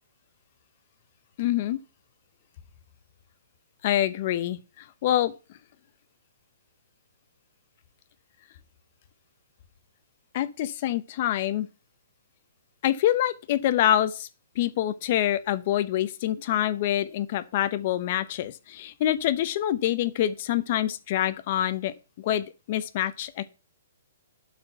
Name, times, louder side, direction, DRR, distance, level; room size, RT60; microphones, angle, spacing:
voice 1, 1.4-1.8 3.8-5.3 10.3-11.7 12.8-14.3 14.6-23.5, left 12 dB, 35° left, 0.8 m, -26 dB
12.0 x 4.4 x 5.7 m
hypercardioid pair, 165°, 0 cm